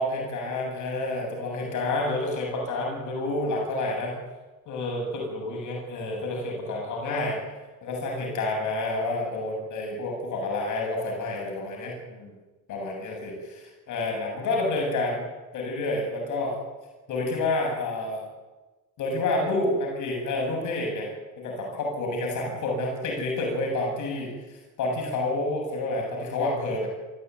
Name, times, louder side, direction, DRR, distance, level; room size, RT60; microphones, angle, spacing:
voice 1, 0.0-4.1 4.7-7.4 7.8-12.3 12.7-16.6 17.1-18.3 19.0-21.1 21.4-26.9, left 2 dB, 80° left, 0 dB, 7.7 m, -29 dB
27.0 x 15.0 x 9.5 m, 1.2 s
cardioid pair, 90°, 30 cm